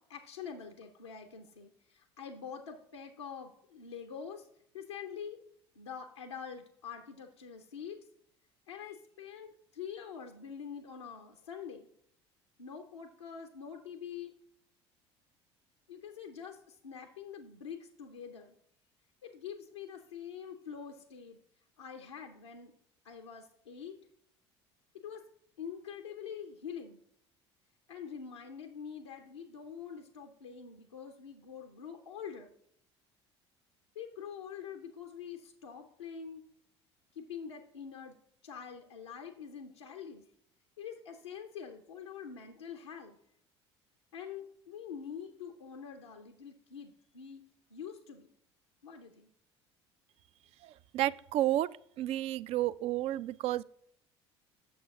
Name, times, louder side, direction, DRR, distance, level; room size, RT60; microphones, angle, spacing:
voice 1, 0.0-4.5 4.7-5.4 5.8-8.0 8.7-11.9 12.6-14.3 15.9-18.6 19.2-21.4 21.8-22.7 23.0-24.0 24.9-25.2 25.6-27.0 27.9-32.5 33.9-36.4 37.1-38.1 38.4-40.2 40.8-43.2 44.1-47.4 47.7-48.3 48.8-49.3, left 7 dB, 80° left, 0.7 m, -45 dB
voice 2, 50.6-51.7 52.0-53.6, right 14 dB, 45° right, 0.3 m, -31 dB
7.9 x 6.8 x 3.6 m
figure-of-eight pair, 60°, 14 cm